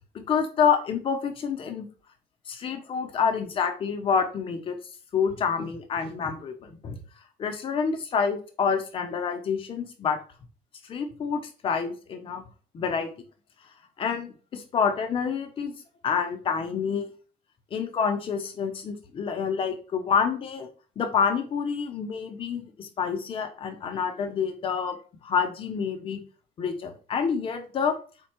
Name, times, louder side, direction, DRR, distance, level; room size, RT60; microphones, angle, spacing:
voice 1, 0.1-1.8 2.5-4.8 5.1-7.0 7.4-10.2 10.8-12.4 12.7-13.1 14.0-15.7 16.0-17.1 17.7-20.7 21.0-25.0 25.2-26.2 26.6-28.0, left 6 dB, 35° left, 5 dB, 0.8 m, -27 dB
4.4 x 2.3 x 4.4 m, 0.38 s
cardioid pair, 155°, 15 cm